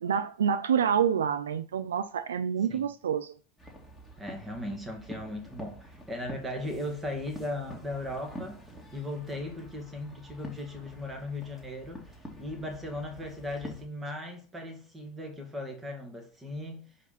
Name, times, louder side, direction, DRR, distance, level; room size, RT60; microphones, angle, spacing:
voice 1, 0.0-3.3, right 8 dB, 85° right, 0.3 m, -27 dB
sound 1, 3.6-13.9, equal, ahead, 2.2 m, -47 dB
voice 2, 4.2-8.6 8.9-12.0 12.4-16.9, left 1 dB, 20° right, 2.2 m, -37 dB
5.3 x 5.1 x 4.1 m
hypercardioid pair, 80°, 0 cm